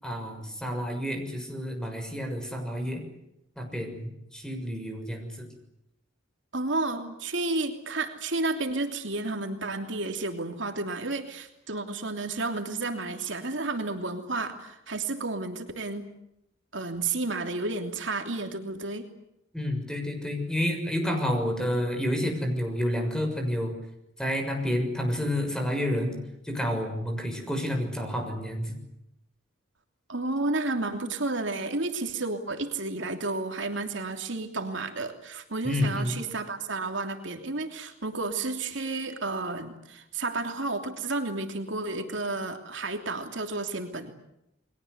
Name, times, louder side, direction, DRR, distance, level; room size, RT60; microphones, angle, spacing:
voice 1, 0.0-3.0 3.6-5.5 19.5-23.7 24.2-26.1 26.4-28.8 35.6-36.2, left 1 dB, 5° left, 4 dB, 6.5 m, -29 dB
voice 2, 6.5-16.0 16.7-19.1 30.1-44.1, right 3 dB, 70° right, 5 dB, 3.0 m, -31 dB
30.0 x 22.5 x 8.2 m, 0.83 s
head